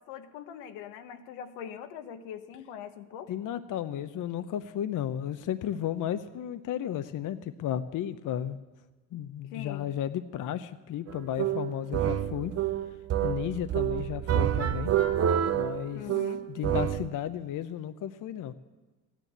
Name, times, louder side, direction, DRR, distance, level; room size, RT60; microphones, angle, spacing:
voice 1, 0.0-3.3 9.4-9.9 15.9-16.5, left 9 dB, 85° left, 8 dB, 1.1 m, -42 dB
voice 2, 3.3-8.6 9.1-12.5 13.2-14.9 15.5-16.0 16.5-18.5, left 10 dB, 50° left, 11 dB, 0.8 m, -33 dB
sound 1, 11.1-17.1, right 10 dB, 40° right, 0.7 m, -28 dB
14.5 x 10.0 x 8.0 m, 1.2 s
supercardioid pair, 75°, 40 cm